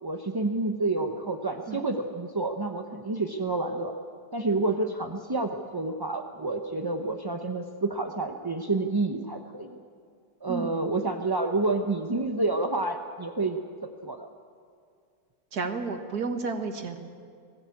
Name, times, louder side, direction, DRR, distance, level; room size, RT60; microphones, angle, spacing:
voice 1, 0.0-3.9 4.3-9.8 10.4-13.6 14.0-14.3, right 2 dB, 20° right, 3 dB, 0.6 m, -29 dB
voice 2, 15.5-17.0, right 4 dB, 70° right, 5 dB, 2.1 m, -31 dB
21.0 x 16.5 x 8.6 m, 2.2 s
omnidirectional pair, 1.7 m